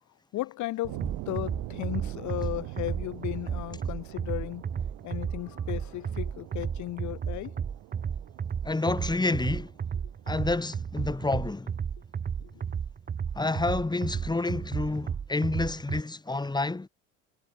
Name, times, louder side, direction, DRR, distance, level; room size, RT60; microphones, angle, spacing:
voice 1, 0.3-4.6 5.0-7.5 12.4-12.7, left 17 dB, 60° left, 1.4 m, -35 dB
Torpedo launch underwater, 0.8-11.6, right 28 dB, 70° right, 3.3 m, -44 dB
sound 1, 1.0-16.0, right 7 dB, 25° right, 1.0 m, -33 dB
voice 2, 8.6-9.7 10.3-11.7 13.3-16.9, left 2 dB, 10° left, 2.9 m, -29 dB
hypercardioid pair, 80°, 34 cm